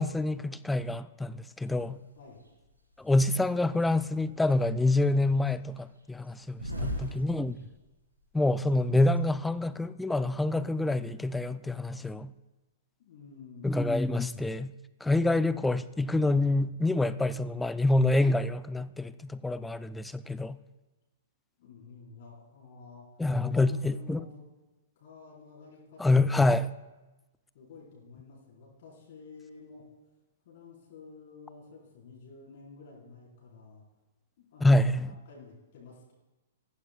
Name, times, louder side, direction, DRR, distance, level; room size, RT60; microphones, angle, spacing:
voice 1, 0.0-2.0 3.0-6.6 7.0-7.6 8.3-12.3 13.6-14.7 15.0-20.6 23.2-24.2 26.0-26.7 34.6-35.1, left 2 dB, 5° left, 0.4 m, -26 dB
sound 1, 1.7-1.8 2.3-3.2 3.8-4.6 4.8-8.0 8.2-8.3 8.5-9.3, left 1 dB, 85° right, 2.2 m, -38 dB
voice 2, 2.1-2.5 6.7-7.1 13.0-13.8 21.6-23.1 23.5-24.4 25.0-26.7 27.5-29.9 30.4-33.8 34.4-34.8 35.3-36.1, left 4 dB, 50° left, 3.9 m, -51 dB
19.5 x 14.5 x 2.2 m
figure-of-eight pair, 110°, 0 cm